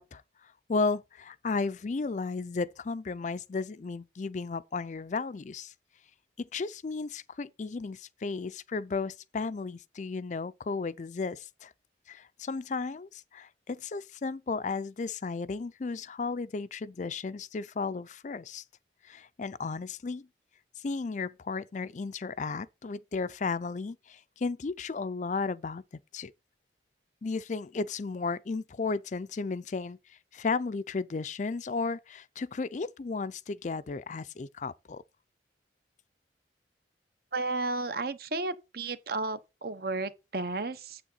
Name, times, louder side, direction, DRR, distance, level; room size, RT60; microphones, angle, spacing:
voice 1, 0.0-5.7 6.4-11.7 12.1-18.6 19.0-20.3 20.8-25.8 26.1-26.3 27.2-35.0, left 4 dB, 40° left, 0.4 m, -34 dB
voice 2, 37.3-41.0, right 3 dB, 55° right, 0.9 m, -33 dB
9.0 x 7.9 x 3.9 m
head